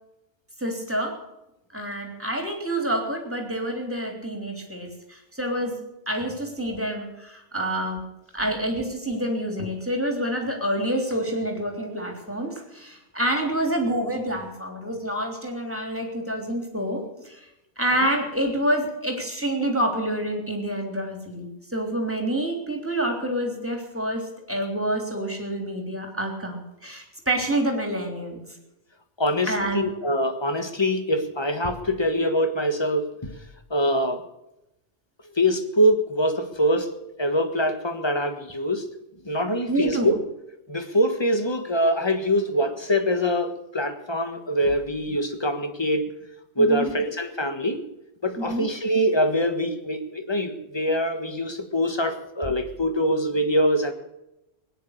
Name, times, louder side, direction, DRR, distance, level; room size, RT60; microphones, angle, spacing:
voice 1, 0.6-1.2 1.7-5.8 6.1-8.1 8.3-17.5 17.8-28.4 29.5-29.9 39.7-40.1 46.6-46.9 48.4-48.7, right 1 dB, 10° right, 2 dB, 3.4 m, -27 dB
voice 2, 29.2-33.3 33.7-34.2 35.3-36.9 37.2-38.9 39.2-40.2 40.7-46.0 46.6-47.8 48.2-53.9, equal, 20° left, 7 dB, 1.5 m, -24 dB
20.0 x 10.0 x 6.6 m, 0.89 s
omnidirectional pair, 1.3 m